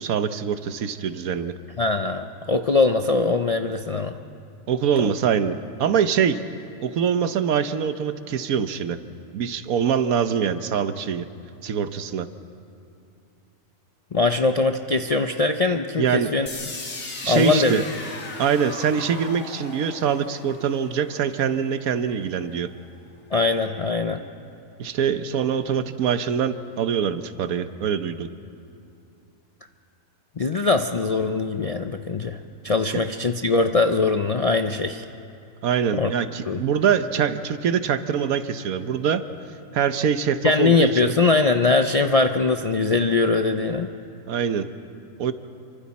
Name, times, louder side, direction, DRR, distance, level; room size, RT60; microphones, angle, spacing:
voice 1, 0.0-1.5 4.7-6.4 6.8-9.0 9.3-11.3 11.6-12.3 16.0-16.3 17.2-17.8 18.4-22.7 24.8-28.3 35.6-39.2 39.7-41.1 44.3-44.7 45.2-45.3, right 7 dB, 85° right, 11 dB, 1.3 m, -24 dB
voice 2, 1.8-4.2 14.1-16.5 17.3-17.8 23.3-24.2 30.4-35.0 36.0-36.1 36.5-36.6 40.4-43.9, left 3 dB, 55° left, 6 dB, 0.4 m, -21 dB
sound 1, 16.5-22.4, left 3 dB, 70° left, 2.3 m, -38 dB
28.0 x 24.5 x 4.2 m, 2.6 s
omnidirectional pair, 1.5 m